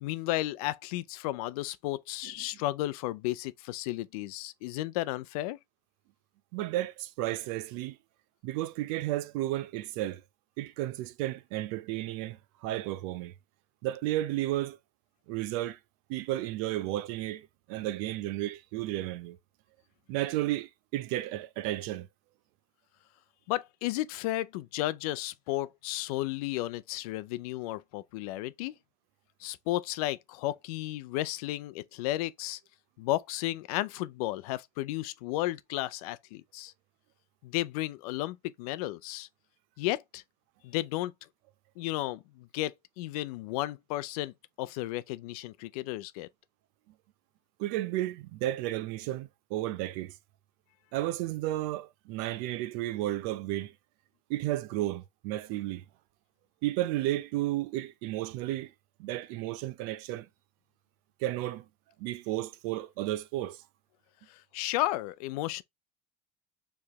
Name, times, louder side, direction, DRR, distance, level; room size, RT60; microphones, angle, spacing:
voice 1, 0.0-5.6 23.5-28.8 29.4-32.6 33.0-36.7 37.4-39.3 39.8-40.2 40.6-41.1 41.8-46.3 64.3-65.6, left 16 dB, 85° left, 0.5 m, -33 dB
voice 2, 6.5-8.0 8.4-10.2 10.6-13.3 13.8-14.8 15.3-15.8 16.1-19.4 20.1-22.1 47.6-50.1 50.9-53.7 54.3-55.8 56.6-58.7 59.0-60.3 61.2-61.6 62.0-63.6, right 15 dB, 70° right, 0.6 m, -33 dB
4.7 x 3.3 x 2.9 m
supercardioid pair, 130°, 19 cm